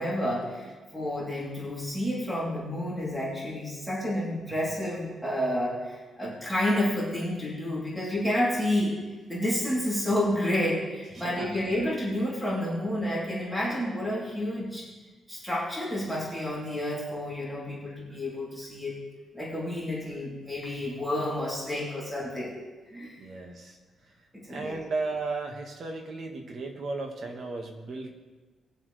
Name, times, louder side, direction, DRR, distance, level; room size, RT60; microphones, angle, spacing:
voice 1, 0.0-8.9 9.3-14.9 15.3-18.9 19.3-22.5 22.9-23.1 24.3-24.8, left 1 dB, ahead, -8 dB, 3.6 m, -30 dB
voice 2, 11.1-11.5 23.2-23.8 24.5-28.2, right 3 dB, 50° right, 2 dB, 1.9 m, -35 dB
21.0 x 7.7 x 3.5 m, 1.3 s
cardioid pair, 120°, 0 cm